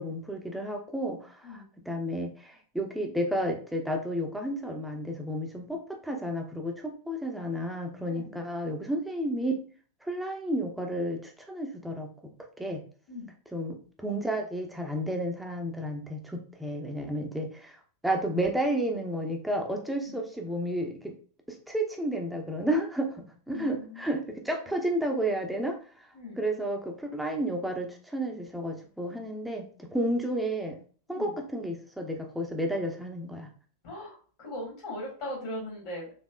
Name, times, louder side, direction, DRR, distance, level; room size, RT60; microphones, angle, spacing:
voice 1, 0.0-9.5 10.0-12.1 12.6-12.8 13.5-17.8 18.0-21.2 21.5-25.8 26.4-30.8 31.1-33.5, right 1 dB, 5° right, 2 dB, 0.7 m, -32 dB
voice 2, 8.1-8.4 13.1-13.3 20.0-20.2 23.5-24.3 24.6-24.7 26.1-26.4 31.1-31.3 33.8-36.1, left 1 dB, 50° left, -4 dB, 1.6 m, -40 dB
4.2 x 2.8 x 2.3 m, 0.42 s
figure-of-eight pair, 90°, 0 cm